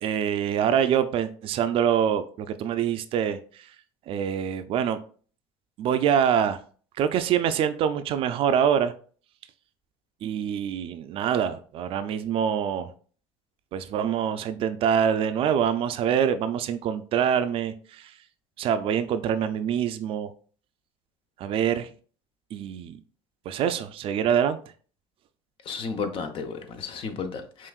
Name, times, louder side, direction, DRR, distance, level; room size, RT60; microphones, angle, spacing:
voice 1, 0.0-3.4 4.1-5.0 5.8-6.6 7.0-8.9 10.2-12.9 13.7-18.1 18.6-20.3 21.4-21.9 22.5-23.0 23.5-24.6, right 8 dB, 60° right, 0.4 m, -25 dB
voice 2, 25.7-27.7, left 5 dB, 55° left, 0.7 m, -33 dB
5.6 x 2.5 x 2.3 m
supercardioid pair, 85°, 11 cm